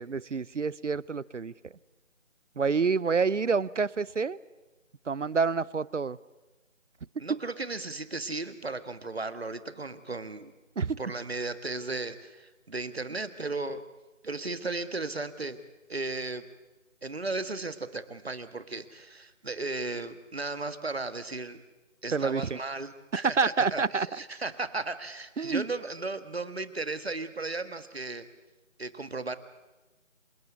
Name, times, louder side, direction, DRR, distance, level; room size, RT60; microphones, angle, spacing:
voice 1, 0.0-1.5 2.6-4.4 5.1-6.2 10.8-11.0 22.1-22.6 23.1-24.1 25.4-25.6, right 5 dB, 70° right, 22 dB, 0.7 m, -28 dB
voice 2, 7.2-10.5 11.0-13.8 14.2-15.6 15.9-16.4 17.0-21.6 22.0-28.3 28.8-29.4, right 3 dB, 55° right, 12 dB, 1.5 m, -35 dB
27.5 x 17.5 x 8.2 m, 1.1 s
figure-of-eight pair, 170°, 38 cm